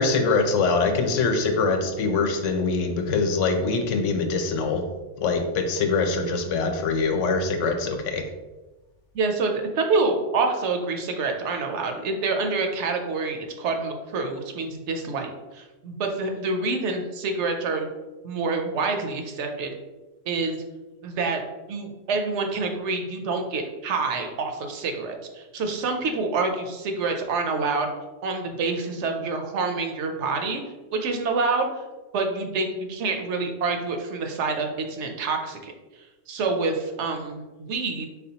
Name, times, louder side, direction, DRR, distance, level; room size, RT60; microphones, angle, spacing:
voice 1, 0.0-4.8 5.2-8.2, left 4 dB, 90° left, 5 dB, 1.0 m, -23 dB
voice 2, 9.1-17.9 18.2-19.7 20.3-20.6 21.0-21.4 21.7-27.9 28.2-30.6 30.9-31.7 32.1-35.7 36.3-38.1, right 3 dB, 75° right, 4 dB, 0.9 m, -27 dB
4.1 x 3.5 x 2.8 m, 1.1 s
omnidirectional pair, 1.2 m